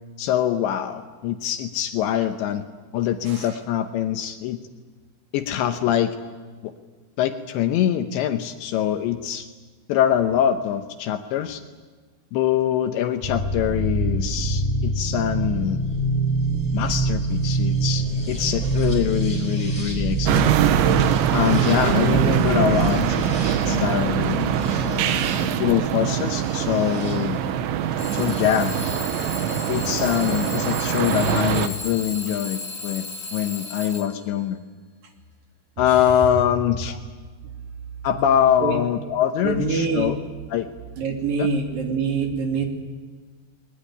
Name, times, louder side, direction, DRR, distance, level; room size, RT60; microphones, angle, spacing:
voice 1, 0.2-2.6 2.9-4.6 5.3-6.2 6.6-6.7 7.2-9.5 9.9-11.6 12.3-15.8 16.7-20.5 21.3-24.4 24.9-25.1 25.6-27.4 28.1-28.7 29.7-34.6 35.8-37.0 38.0-40.2 40.5-40.7 41.4-41.5, left 10 dB, 75° left, 7 dB, 3.0 m, -24 dB
voice 2, 3.3-3.6 35.9-36.0 38.6-38.8 39.4-40.1 41.0-42.7, right 4 dB, 50° right, 3 dB, 4.0 m, -25 dB
sound 1, 13.2-28.9 30.1-30.7, right 2 dB, 5° left, 5.8 m, -26 dB
sound 2, 20.3-31.7, right 10 dB, 80° right, 3.3 m, -23 dB
Alarm / Clock, 22.9-23.1 23.6-24.0 24.6-25.0 25.9-26.0 28.0-34.4, left 3 dB, 50° left, 1.7 m, -35 dB
21.0 x 20.0 x 9.9 m, 1.4 s
omnidirectional pair, 5.6 m